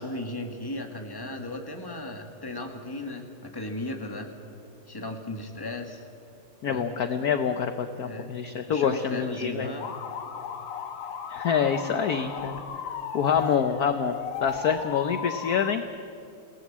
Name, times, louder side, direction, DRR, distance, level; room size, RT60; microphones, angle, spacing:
voice 1, 0.0-4.3 4.9-6.0 6.6-6.9 8.0-8.3 8.7-9.9, left 1 dB, 10° left, 4 dB, 1.7 m, -36 dB
voice 2, 6.6-9.7 11.3-12.6 13.1-15.8, left 7 dB, 60° left, 8 dB, 1.1 m, -26 dB
sound 1, 9.8-15.7, left 7 dB, 80° left, 2.2 m, -36 dB
28.5 x 18.0 x 7.4 m, 2.6 s
omnidirectional pair, 2.4 m